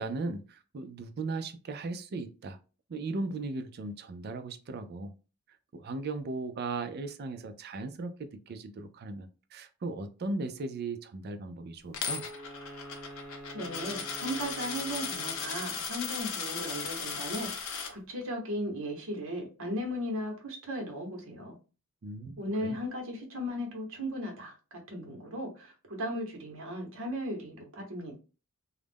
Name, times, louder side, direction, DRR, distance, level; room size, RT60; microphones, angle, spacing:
voice 1, 0.0-2.6 2.9-5.1 5.7-12.2 22.0-22.8, right 3 dB, 45° right, 9 dB, 0.4 m, -37 dB
Coin (dropping), 11.9-17.9, left 6 dB, 65° left, 0.5 m, -37 dB
Wind instrument woodwind instrument, 12.0-15.7, equal, 5° right, 0.7 m, -47 dB
voice 2, 13.5-21.6 22.4-28.1, equal, 60° right, 2 dB, 0.9 m, -36 dB
2.3 x 2.1 x 3.3 m, 0.34 s
head